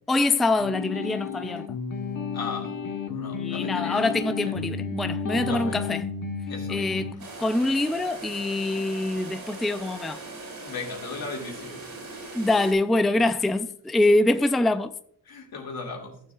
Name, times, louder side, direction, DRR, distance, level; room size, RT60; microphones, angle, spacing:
voice 1, 0.1-1.6 3.4-6.0 6.7-7.1 7.4-10.2 12.3-14.9, left 2 dB, ahead, 0.3 m, -24 dB
sound 1, 0.6-7.1, left 6 dB, 60° left, 1.2 m, -32 dB
voice 2, 2.3-2.8 3.1-4.7 5.3-5.8 6.5-7.2 10.5-12.1 13.1-13.3 15.2-16.2, left 4 dB, 80° left, 2.3 m, -38 dB
sound 2, 7.2-12.7, right 2 dB, 75° right, 2.8 m, -40 dB
14.5 x 7.1 x 2.4 m
wide cardioid pair, 105°, 36 cm